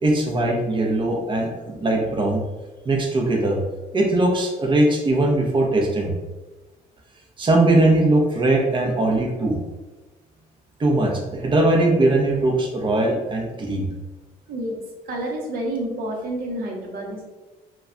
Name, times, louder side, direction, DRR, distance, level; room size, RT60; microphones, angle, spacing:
voice 1, 0.0-2.4 2.9-3.6 3.9-6.1 7.4-9.6 10.8-13.9, right 2 dB, 30° right, 0 dB, 0.6 m, -20 dB
voice 2, 14.5-17.2, right 1 dB, 60° right, 0 dB, 0.8 m, -29 dB
2.3 x 2.2 x 3.7 m, 1.1 s
cardioid pair, 110°, 17 cm